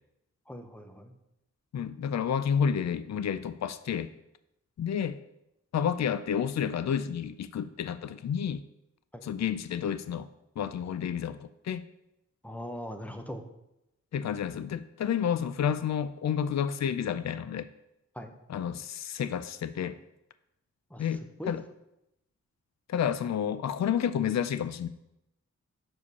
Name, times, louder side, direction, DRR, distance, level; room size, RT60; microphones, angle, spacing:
voice 1, 0.5-1.1 9.1-9.3 12.4-13.4 18.1-18.3 20.9-21.6, equal, 5° left, 5 dB, 0.9 m, -41 dB
voice 2, 1.7-4.1 4.8-5.2 5.7-8.6 9.2-10.3 10.6-11.8 14.1-17.7 18.5-20.0 21.0-21.2 21.5-21.6 22.9-24.9, left 8 dB, 65° left, 13 dB, 0.4 m, -30 dB
6.4 x 5.1 x 5.4 m, 0.86 s
wide cardioid pair, 75°, 30 cm